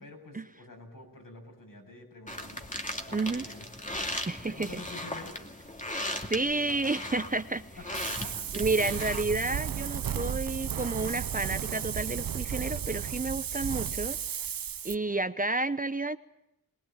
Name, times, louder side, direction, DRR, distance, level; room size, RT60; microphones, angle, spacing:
voice 1, 0.0-2.7 3.1-3.7 4.4-5.4 6.5-7.4 7.9-8.4 8.8-9.1, left 2 dB, 60° left, 2 dB, 7.9 m, -47 dB
sound 1, 2.3-9.2, left 1 dB, 20° left, 2.6 m, -38 dB
voice 2, 3.1-3.5 4.3-4.7 6.3-7.6 8.5-14.2 14.8-16.2, right 2 dB, 25° right, 11 dB, 0.9 m, -30 dB
Wind, 7.9-14.9, right 8 dB, 70° right, 0.8 m, -34 dB
22.5 x 20.0 x 9.1 m, 0.86 s
cardioid pair, 55°, 36 cm